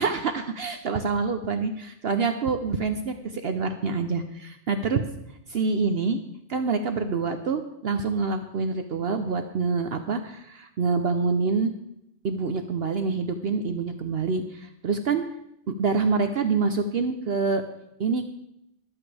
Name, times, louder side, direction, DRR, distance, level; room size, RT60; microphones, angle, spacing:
voice 1, 0.0-5.0 5.5-6.2 6.5-11.7 12.2-15.2 15.8-17.6 18.0-18.2, right 4 dB, 60° right, 7 dB, 0.9 m, -26 dB
23.5 x 7.9 x 3.4 m, 0.81 s
omnidirectional pair, 1.2 m